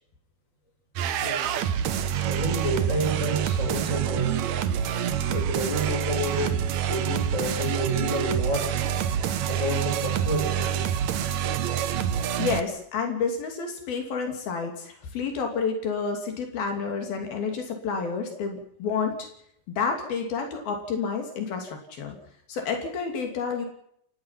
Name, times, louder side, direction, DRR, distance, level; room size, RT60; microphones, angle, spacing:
sound 1, 1.0-12.6, right 9 dB, 60° right, 2.1 m, -27 dB
voice 1, 1.2-1.6 2.2-4.4 5.3-6.6 6.8-8.8 9.4-10.9, equal, 20° left, 3 dB, 6.1 m, -30 dB
voice 2, 12.4-19.1 19.7-22.2 22.5-23.7, left 5 dB, 80° left, 4 dB, 4.7 m, -29 dB
29.5 x 17.0 x 5.9 m, 0.72 s
omnidirectional pair, 4.2 m